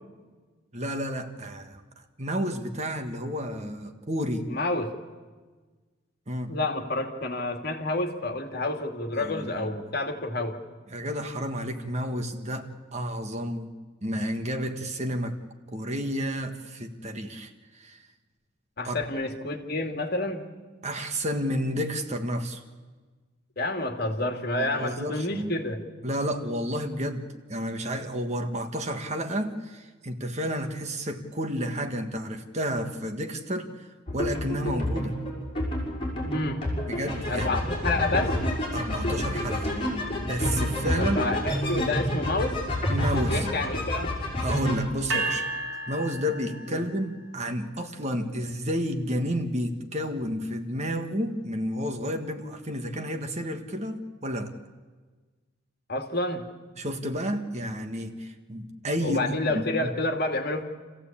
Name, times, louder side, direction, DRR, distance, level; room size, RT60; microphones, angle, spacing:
voice 1, 0.7-1.8 2.2-4.5 6.3-6.5 9.2-9.7 10.9-13.7 14.0-15.4 15.7-18.0 18.8-19.0 20.8-22.6 24.6-25.6 26.0-27.2 27.5-35.1 36.9-37.6 38.7-39.7 40.2-41.2 42.9-43.5 44.4-45.5 45.9-54.5 56.8-59.9, equal, 35° right, 6 dB, 1.6 m, -31 dB
voice 2, 4.5-4.9 6.5-10.6 18.8-20.4 23.6-25.8 36.2-36.7 37.3-38.3 41.0-42.6 43.3-44.2 46.7-46.8 55.9-56.5 59.0-60.6, left 2 dB, 55° left, 4 dB, 2.4 m, -29 dB
sound 1, 34.1-44.8, left 1 dB, 25° left, 6.4 m, -28 dB
sound 2, 45.1-47.2, right 2 dB, 75° right, 4.4 m, -32 dB
28.5 x 15.5 x 8.7 m, 1.4 s
head